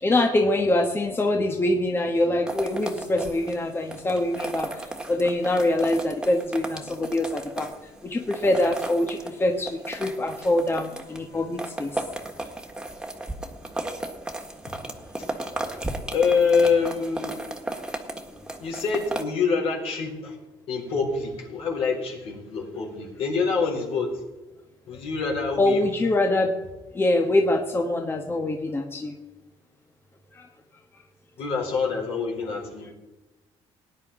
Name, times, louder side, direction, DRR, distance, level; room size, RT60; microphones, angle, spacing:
voice 1, 0.0-7.7 8.0-12.0 15.8-16.0 25.6-26.6 26.9-29.2 30.3-30.5, left 1 dB, 20° left, 3 dB, 1.3 m, -24 dB
sound 1, 2.5-19.2, right 2 dB, 5° right, 1.7 m, -35 dB
voice 2, 16.1-17.4 18.6-20.4 20.7-24.1 24.9-25.8 31.4-32.9, left 5 dB, 65° left, -1 dB, 4.8 m, -25 dB
19.0 x 10.0 x 3.7 m, 1.1 s
cardioid pair, 105°, 11 cm